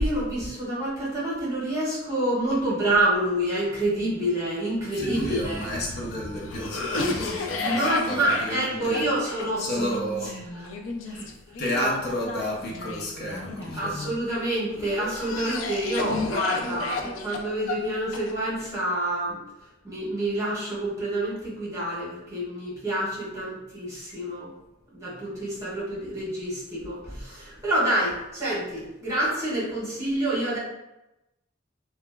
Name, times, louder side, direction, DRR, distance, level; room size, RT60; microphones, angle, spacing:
voice 1, 0.0-5.7 7.6-10.0 11.0-11.3 11.8-11.9 13.8-19.4 19.8-24.5 24.9-30.6, right 1 dB, 20° right, -9 dB, 1.3 m, -27 dB
Cough, 4.9-14.2 14.7-18.7, left 3 dB, 75° left, 0.4 m, -33 dB
voice 2, 4.9-9.1 9.6-10.3 11.6-14.0, equal, 55° left, -3 dB, 0.7 m, -31 dB
2.9 x 2.3 x 2.2 m, 0.94 s
head